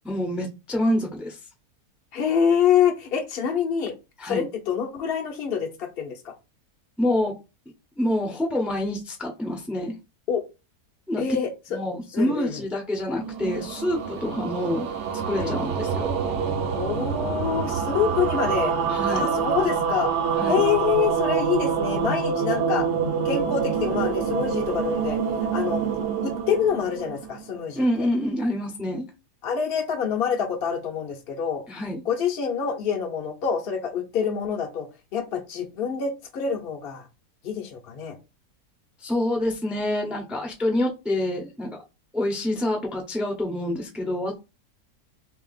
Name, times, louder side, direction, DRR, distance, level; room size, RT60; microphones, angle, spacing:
voice 1, 0.0-1.4 4.2-4.5 7.0-7.3 8.0-9.9 11.1-11.2 11.7-14.9 15.3-16.1 18.9-19.3 20.4-20.6 27.8-29.1 31.7-32.0 39.0-41.8 42.1-44.4, left 1 dB, ahead, 1 dB, 0.3 m, -27 dB
voice 2, 2.1-4.0 4.3-6.3 10.3-10.4 11.2-11.8 12.1-12.7 14.3-14.4 15.3-15.6 16.8-18.8 19.1-20.1 20.5-22.9 23.2-25.2 25.5-25.8 26.2-28.1 29.4-31.6 32.0-34.9 35.1-37.1 37.4-38.2, left 7 dB, 55° left, 1 dB, 0.7 m, -26 dB
sound 1, 13.1-27.6, right 6 dB, 60° right, 0.8 m, -26 dB
3.3 x 2.8 x 3.9 m, 0.28 s
omnidirectional pair, 1.7 m